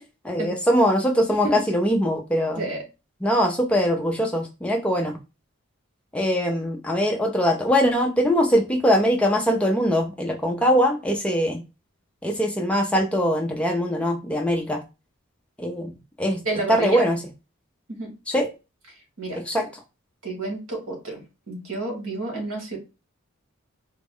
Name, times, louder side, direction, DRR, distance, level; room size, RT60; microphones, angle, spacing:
voice 1, 0.3-2.6 3.2-5.2 6.1-11.6 12.2-14.8 15.6-15.9 16.2-16.4 16.7-17.2 18.3-18.5 19.4-19.6, equal, 5° left, 2 dB, 0.4 m, -22 dB
voice 2, 16.4-17.0 17.9-18.1 19.2-19.4 20.2-22.8, right 2 dB, 75° right, 1 dB, 1.6 m, -30 dB
3.9 x 2.0 x 3.7 m, 0.28 s
head